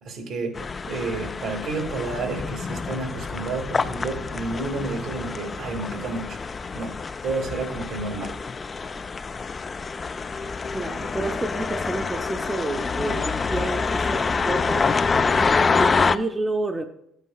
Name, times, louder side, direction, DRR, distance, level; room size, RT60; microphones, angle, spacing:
voice 1, 0.0-0.6 0.9-6.4 6.7-6.9 7.2-8.4, right 3 dB, 65° right, 3 dB, 2.1 m, -30 dB
sound 1, 0.5-16.2, left 4 dB, 30° left, 0.3 m, -26 dB
voice 2, 10.7-14.8 15.3-16.9, right 2 dB, 20° right, 5 dB, 0.6 m, -30 dB
13.0 x 8.1 x 2.3 m, 0.76 s
supercardioid pair, 75°, 0 cm